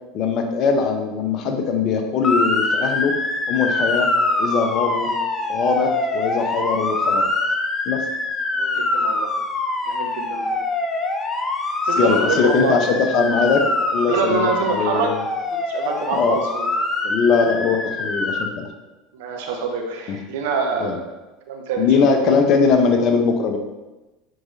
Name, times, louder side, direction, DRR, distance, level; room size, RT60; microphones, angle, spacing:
voice 1, 0.1-3.1 3.5-4.1 4.4-5.1 5.5-7.2 7.9-8.0 12.0-13.6 13.9-15.2 16.1-16.4 17.0-18.7 20.1-20.2 20.8-21.0 21.8-23.6, left 5 dB, 50° left, 4 dB, 1.0 m, -20 dB
Motor vehicle (road) / Siren, 2.2-18.4, left 2 dB, 25° left, 0.8 m, -24 dB
voice 2, 8.6-9.3 9.9-10.6 11.8-12.8 14.0-15.1 15.5-16.7 19.1-21.1 21.5-22.2, right 4 dB, 70° right, 2 dB, 1.0 m, -25 dB
7.6 x 5.0 x 2.8 m, 1.1 s
hypercardioid pair, 80°, 0 cm